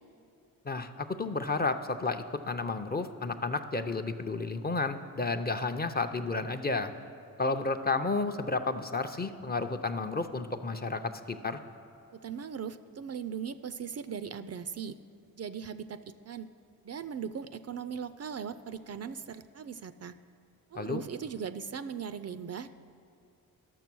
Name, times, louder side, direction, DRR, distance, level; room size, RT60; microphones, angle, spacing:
voice 1, 0.6-6.9 7.4-11.6 20.7-21.0, left 3 dB, 25° left, 7 dB, 0.6 m, -32 dB
voice 2, 12.1-15.0 15.3-16.5 16.8-20.2 20.7-22.8, right 7 dB, 45° right, 11 dB, 0.4 m, -39 dB
11.5 x 6.6 x 6.1 m, 2.6 s
cardioid pair, 55°, 36 cm